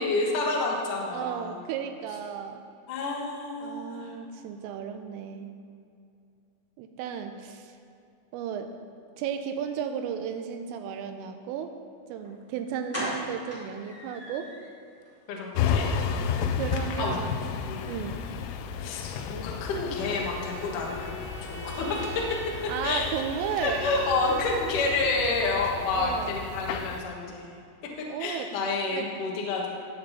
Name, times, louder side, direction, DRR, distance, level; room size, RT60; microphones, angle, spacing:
voice 1, 0.0-1.6 2.9-4.1 15.3-15.9 17.0-17.2 17.6-18.0 18.8-21.1 21.4-22.3 22.6-23.1 23.6-27.5 28.0-29.7, left 3 dB, 65° left, -2 dB, 2.1 m, -29 dB
voice 2, 1.1-2.6 3.6-5.5 6.8-7.7 8.3-8.7 9.2-11.7 12.1-14.5 16.5-17.4 17.8-18.2 22.7-23.9 25.9-26.3 28.1-28.5 28.9-29.1, right 8 dB, 85° right, 6 dB, 3.2 m, -34 dB
sound 1, 12.2-12.3 12.9-14.7 15.0-15.1 15.5-15.7 15.9-16.0, equal, 15° left, 0.4 m, -37 dB
sound 2, 15.5-27.0, left 6 dB, 85° left, 2.9 m, -33 dB
Bowed string instrument, 19.9-24.6, equal, 55° right, 2.8 m, -42 dB
14.5 x 7.8 x 4.2 m, 2.6 s
omnidirectional pair, 5.9 m